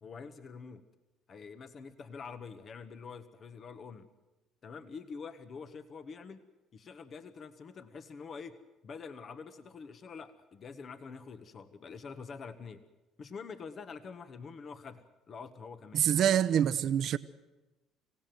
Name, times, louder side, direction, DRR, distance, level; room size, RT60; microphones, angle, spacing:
voice 1, 0.0-0.8 1.3-4.1 4.6-6.4 6.7-8.6 8.8-12.8 13.2-16.0, left 5 dB, 45° left, 1.5 m, -46 dB
voice 2, 15.9-17.2, right 9 dB, 60° right, 0.9 m, -26 dB
26.5 x 17.0 x 7.9 m
hypercardioid pair, 65°, 0 cm